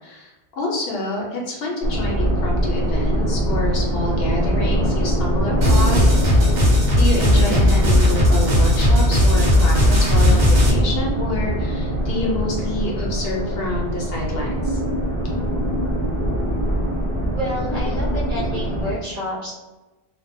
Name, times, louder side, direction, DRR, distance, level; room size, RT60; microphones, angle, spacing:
voice 1, 0.0-6.1 6.9-14.8, left 1 dB, 65° left, -1 dB, 0.7 m, -27 dB
sound 1, 1.8-18.9, equal, 30° left, 0.4 m, -23 dB
sound 2, 3.3-12.8, equal, 70° right, 0.8 m, -27 dB
sound 3, 5.6-10.7, left 1 dB, 90° right, 1.1 m, -16 dB
voice 2, 17.3-19.5, equal, 45° right, -7 dB, 0.6 m, -29 dB
2.6 x 2.1 x 2.5 m, 1.1 s
omnidirectional pair, 1.2 m